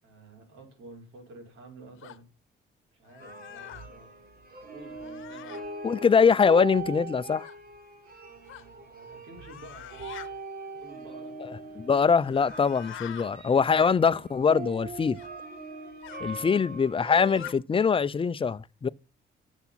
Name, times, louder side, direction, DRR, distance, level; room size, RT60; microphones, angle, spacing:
voice 1, 0.0-2.2 2.9-4.1 4.6-5.7 8.4-11.4 11.6-11.9 16.3-16.8, right 2 dB, 80° right, 5.5 m, -50 dB
sound 1, 2.0-2.2 3.1-3.9 4.9-5.6 7.4-7.6 8.5-8.7 9.4-10.3 12.0-13.3 15.1-15.3 16.0-16.2 17.0-17.5, left 14 dB, 85° left, 0.9 m, -45 dB
sound 2, 3.2-17.5, right 3 dB, 50° right, 3.8 m, -41 dB
voice 2, 5.8-7.5 11.8-15.2 16.2-18.9, left 6 dB, 25° left, 0.6 m, -23 dB
11.5 x 7.3 x 5.8 m
cardioid pair, 90°, 20 cm